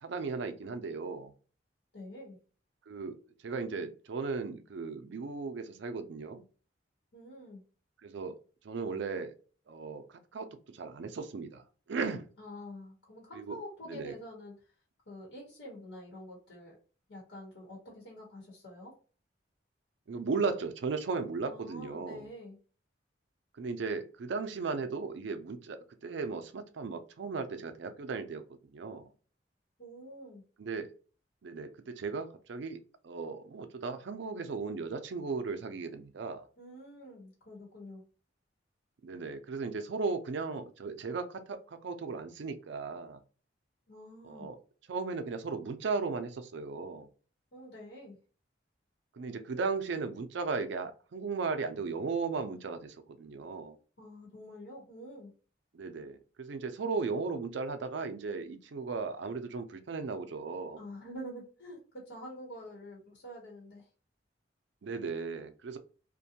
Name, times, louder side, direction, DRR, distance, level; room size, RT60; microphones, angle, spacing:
voice 1, 0.0-1.3 2.9-3.2 3.4-6.4 8.0-8.4 8.6-9.3 9.7-10.0 10.3-10.5 10.7-11.6 11.9-12.2 13.3-13.6 13.9-14.2 20.1-22.3 23.6-28.4 28.7-29.1 30.6-30.9 31.4-36.5 39.0-43.2 44.3-44.6 44.9-47.1 49.2-53.8 55.7-60.8 64.8-65.8, right 4 dB, 70° right, 9 dB, 0.4 m, -36 dB
voice 2, 1.9-2.4 7.1-7.6 12.4-14.6 15.1-16.8 17.1-19.0 21.5-22.6 29.8-30.4 36.6-38.0 43.9-44.5 47.5-48.2 54.0-55.3 60.8-63.9, equal, 70° left, -3 dB, 1.0 m, -47 dB
2.5 x 2.2 x 2.7 m, 0.38 s
head